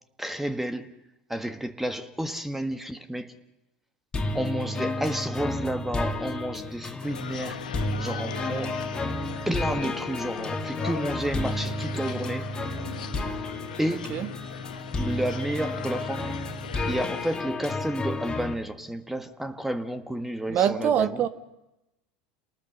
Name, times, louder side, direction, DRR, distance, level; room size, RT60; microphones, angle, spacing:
voice 1, 0.2-0.9 1.3-3.3 4.3-7.7 8.0-8.8 9.5-12.5 13.8-14.2 15.0-16.4 16.9-21.3, right 1 dB, 5° right, 1.5 m, -31 dB
sound 1, 4.1-18.5, left 2 dB, 20° left, 2.4 m, -32 dB
sound 2, 7.0-17.4, left 9 dB, 85° left, 1.2 m, -40 dB
voice 2, 20.5-21.3, right 9 dB, 45° right, 1.4 m, -24 dB
29.0 x 19.5 x 6.7 m
hypercardioid pair, 85°, 4 cm